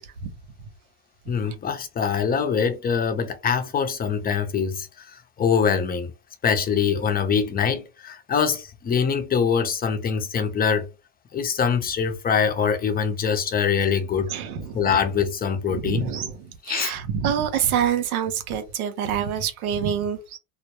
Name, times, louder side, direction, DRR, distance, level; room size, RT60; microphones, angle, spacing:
voice 1, 1.3-6.1 6.4-10.9 11.3-14.3 14.7-16.1 16.6-16.9, left 6 dB, 20° left, 0.5 m, -24 dB
voice 2, 14.3-14.8 15.7-20.4, right 8 dB, 90° right, 0.6 m, -26 dB
2.1 x 2.0 x 2.8 m
hypercardioid pair, 85°, 42 cm